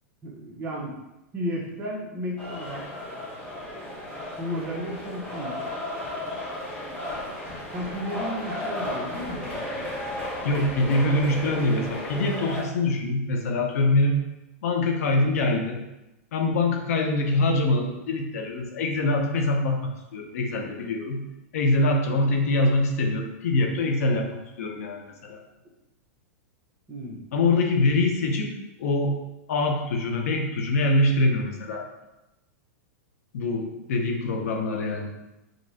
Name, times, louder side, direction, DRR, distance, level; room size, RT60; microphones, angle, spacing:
voice 1, 0.2-1.0 1.3-2.9 4.4-5.6 7.7-9.7 26.9-27.2, equal, 25° right, -3 dB, 1.1 m, -33 dB
sound 1, 2.4-12.6, left 1 dB, 10° left, 1.1 m, -34 dB
voice 2, 10.4-14.2 14.6-15.8 16.3-21.2 21.5-24.3 24.6-25.4 27.3-29.2 29.5-31.9 33.3-35.1, left 2 dB, 75° left, 3 dB, 0.8 m, -24 dB
5.2 x 3.0 x 2.8 m, 0.95 s
supercardioid pair, 135°, 8 cm